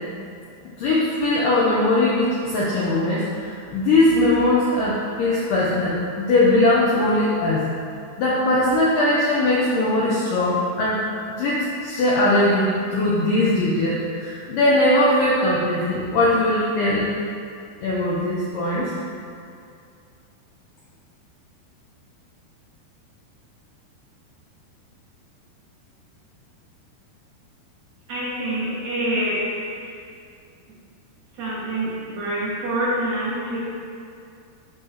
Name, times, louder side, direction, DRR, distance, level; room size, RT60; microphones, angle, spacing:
voice 1, 0.8-7.7 8.2-11.0 11.4-17.1 17.8-18.9, left 1 dB, 85° left, -5 dB, 1.9 m, -20 dB
voice 2, 28.1-29.6 31.3-33.6, right 1 dB, 55° right, -8 dB, 2.7 m, -26 dB
8.1 x 3.8 x 6.1 m, 2.4 s
omnidirectional pair, 4.8 m